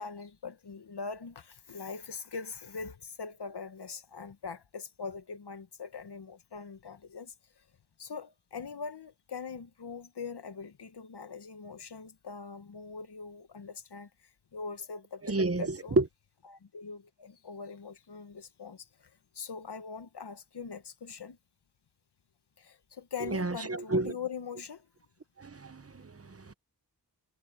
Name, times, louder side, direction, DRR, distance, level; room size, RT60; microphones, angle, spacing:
voice 1, 0.0-7.6 8.0-16.0 16.5-21.4 22.6-24.9, left 5 dB, 80° left, 1.3 m, -42 dB
voice 2, 15.2-16.1 23.3-24.1 25.4-26.5, right 2 dB, 35° right, 1.0 m, -30 dB
wide cardioid pair, 85°, 39 cm